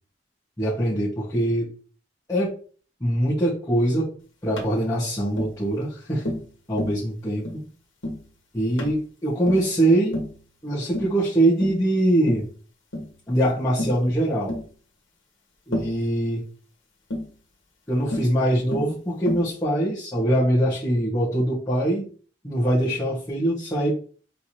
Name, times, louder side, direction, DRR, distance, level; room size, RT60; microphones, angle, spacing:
voice 1, 0.6-1.7 2.3-2.5 3.0-4.1 4.4-6.3 6.7-7.6 8.5-10.2 10.6-12.5 13.3-14.5 15.7-16.4 17.9-22.1 22.4-24.0, right 1 dB, 15° left, -12 dB, 1.4 m, -23 dB
Tap, 4.6-4.7 5.4-5.6 6.2-6.5 6.8-7.0 7.4-7.6 8.0-8.2 8.8-9.0 9.5-9.7 10.1-10.4 10.9-11.2 11.6-11.8 12.3-12.5 12.9-13.1 13.8-14.0 14.5-14.7 15.7-16.0 17.1-17.3 18.1-18.3 18.7-18.9 19.3-19.5, left 1 dB, 80° left, 1.3 m, -30 dB
4.6 x 3.6 x 2.8 m, 0.42 s
head